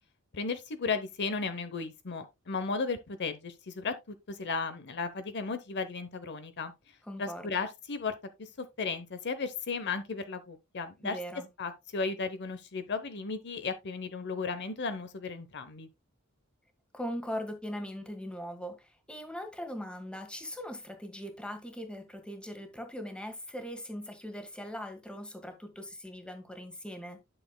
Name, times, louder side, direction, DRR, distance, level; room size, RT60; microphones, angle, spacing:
voice 1, 0.3-6.7 7.2-11.2 11.6-15.9, left 4 dB, 55° left, 0.8 m, -35 dB
voice 2, 7.1-7.6 11.0-11.5 16.9-27.2, equal, 5° left, 1.5 m, -40 dB
11.0 x 6.5 x 2.2 m
head